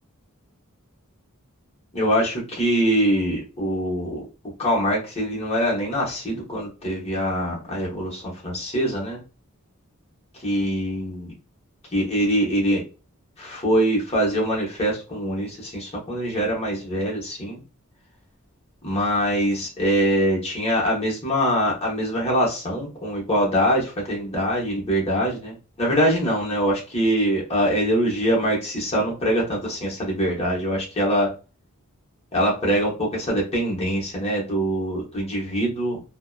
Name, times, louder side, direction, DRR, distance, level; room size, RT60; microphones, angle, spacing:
voice 1, 1.9-4.2 4.6-9.2 10.4-11.3 11.9-12.8 13.4-17.6 18.8-31.3 32.3-36.0, equal, 30° left, -3 dB, 1.0 m, -23 dB
2.6 x 2.1 x 2.2 m, 0.32 s
head